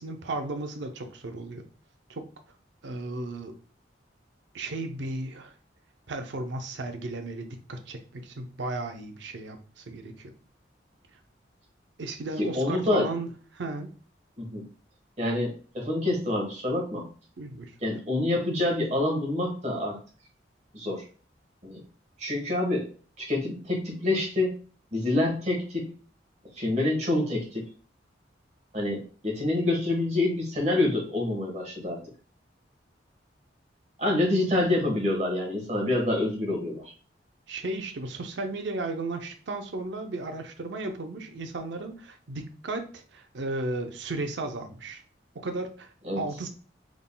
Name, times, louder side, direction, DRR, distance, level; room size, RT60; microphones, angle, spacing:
voice 1, 0.0-1.6 2.1-2.2 2.8-3.5 4.5-5.5 6.1-10.3 12.0-13.9 17.4-17.7 37.5-45.0 45.3-46.5, right 2 dB, 75° right, 5 dB, 0.6 m, -35 dB
voice 2, 12.4-13.1 14.4-14.6 15.2-17.1 17.8-20.0 20.7-21.0 21.6-21.8 22.2-22.9 23.2-24.5 24.9-25.9 26.6-27.6 28.7-32.0 34.0-36.8 46.1-46.2, left 2 dB, 35° right, 0 dB, 1.3 m, -27 dB
3.7 x 3.6 x 2.2 m, 0.39 s
head